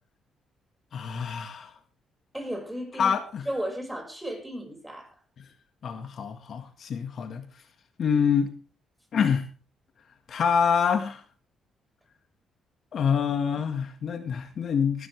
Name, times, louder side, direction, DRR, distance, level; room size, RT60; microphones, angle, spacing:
voice 1, 0.9-1.7 3.0-3.5 5.8-7.5 8.0-8.5 9.1-9.4 10.3-11.2 12.9-15.1, left 7 dB, 60° left, 8 dB, 1.7 m, -26 dB
voice 2, 2.3-3.2 3.4-5.2, equal, 5° right, 4 dB, 5.5 m, -34 dB
18.5 x 12.0 x 3.3 m, 0.35 s
cardioid pair, 90°, 0 cm